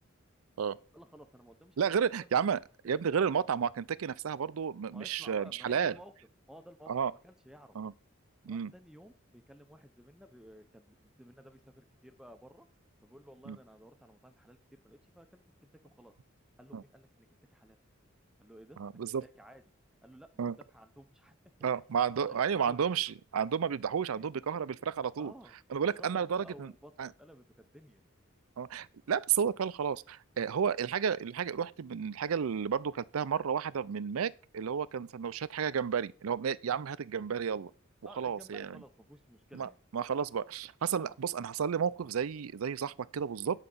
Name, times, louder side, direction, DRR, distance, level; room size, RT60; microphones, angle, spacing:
voice 1, 0.9-2.5 4.9-6.1 6.5-7.8 8.5-12.7 13.0-15.4 15.8-16.1 16.6-17.8 18.4-18.8 19.2-19.6 20.0-21.7 22.2-22.8 24.1-24.2 24.5-24.6 25.2-25.5 26.0-28.0 38.1-39.8 41.0-41.2, equal, 5° right, 0.6 m, -55 dB
voice 2, 1.8-5.9 6.9-7.1 7.8-7.9 8.4-8.7 13.5-13.6 16.7-16.8 18.8-19.2 20.4-20.6 21.6-25.3 25.7-26.7 27.0-27.1 28.6-37.7 38.2-38.8 39.5-43.6, right 7 dB, 85° right, 0.5 m, -32 dB
9.8 x 4.9 x 7.0 m
head